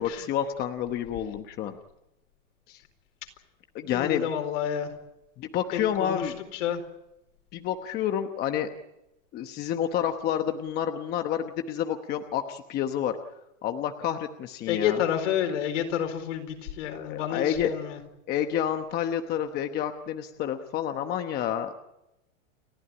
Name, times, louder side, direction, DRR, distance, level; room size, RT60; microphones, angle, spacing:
voice 1, 0.0-1.8 2.7-2.8 3.7-4.2 5.4-6.3 7.5-8.7 9.3-13.2 13.6-15.0 16.9-17.7 18.3-21.7, left 10 dB, 25° left, 7 dB, 1.0 m, -29 dB
voice 2, 3.9-4.9 5.7-6.8 14.7-18.0, left 9 dB, 65° left, 6 dB, 4.4 m, -29 dB
30.0 x 12.0 x 9.9 m, 0.91 s
supercardioid pair, 155°, 39 cm